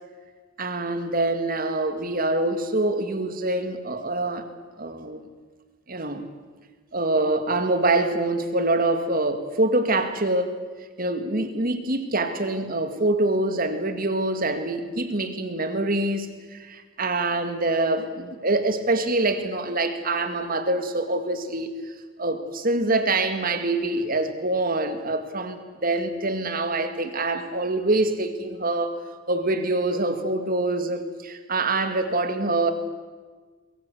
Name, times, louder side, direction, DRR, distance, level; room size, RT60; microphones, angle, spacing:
voice 1, 0.6-4.5 4.8-5.3 5.9-6.3 6.9-10.6 11.0-21.9 22.2-25.6 25.8-29.0 29.3-32.7, right 2 dB, 40° right, 8 dB, 2.1 m, -25 dB
24.0 x 21.5 x 7.9 m, 1.4 s
head